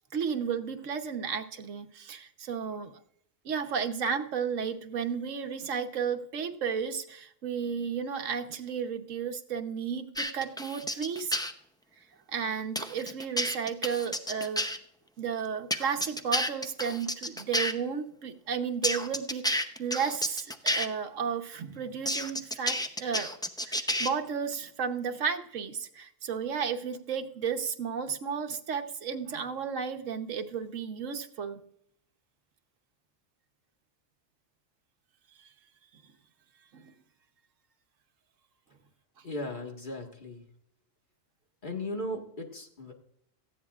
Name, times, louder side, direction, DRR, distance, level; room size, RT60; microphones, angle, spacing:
voice 1, 0.1-3.0 3.4-11.4 12.3-14.7 15.2-23.3 23.6-31.6 36.7-36.9, right 6 dB, 70° right, 6 dB, 1.3 m, -33 dB
sound 1, 10.2-11.5 12.8-14.8 15.7-17.7 18.8-20.9 22.1-24.1, left 1 dB, 5° left, 0.4 m, -30 dB
voice 2, 39.2-40.4 41.6-42.9, left 1 dB, 40° left, 2 dB, 1.8 m, -37 dB
18.0 x 14.0 x 2.4 m, 0.69 s
omnidirectional pair, 1.4 m